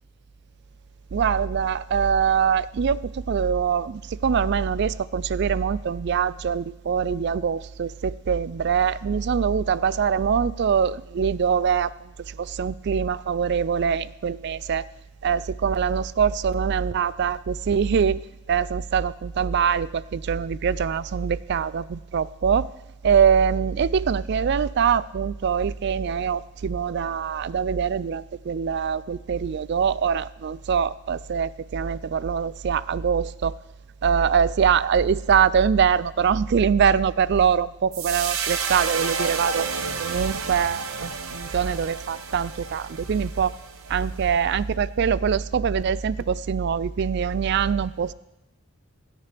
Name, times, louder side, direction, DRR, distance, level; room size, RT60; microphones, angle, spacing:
voice 1, 1.1-14.9 15.2-18.2 18.5-22.7 23.0-33.5 34.0-39.7 40.0-43.5 43.9-48.1, right 7 dB, 55° right, 19 dB, 0.4 m, -23 dB
sound 1, 37.9-44.3, right 5 dB, 85° right, 0.9 m, -31 dB
26.0 x 9.9 x 3.3 m, 0.91 s
head